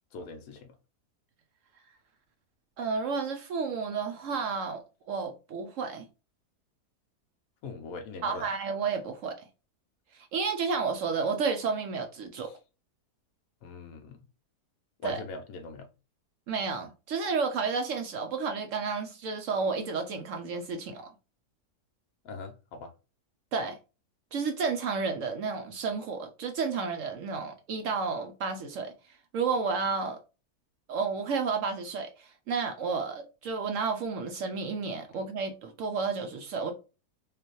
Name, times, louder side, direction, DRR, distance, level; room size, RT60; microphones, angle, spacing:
voice 1, 0.1-0.7 7.6-8.5 12.4-12.5 13.6-14.2 15.0-15.9 22.2-22.9, left 3 dB, 70° left, 1.0 m, -41 dB
voice 2, 2.8-6.1 8.2-9.5 10.1-12.6 15.0-15.2 16.5-21.1 23.5-23.8 24.3-28.9 29.3-30.2 30.9-36.7, right 5 dB, 65° right, 0.8 m, -31 dB
4.8 x 2.4 x 3.0 m
omnidirectional pair, 1.7 m